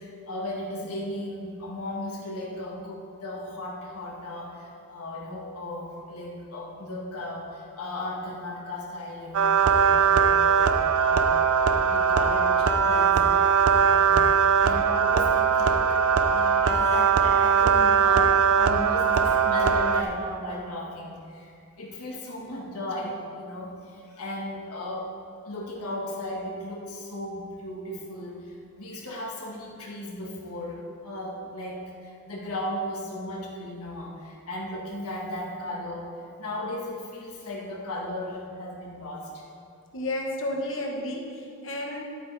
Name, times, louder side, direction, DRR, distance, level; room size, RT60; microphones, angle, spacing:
voice 1, 0.0-11.3 11.7-14.3 14.6-25.2 25.4-39.4, left 1 dB, 85° left, -2 dB, 1.6 m, -36 dB
sound 1, 9.3-20.0, right 6 dB, 80° right, 0.5 m, -21 dB
voice 2, 39.9-42.0, left 1 dB, 60° left, 1 dB, 1.2 m, -32 dB
11.0 x 8.7 x 3.4 m, 2.4 s
head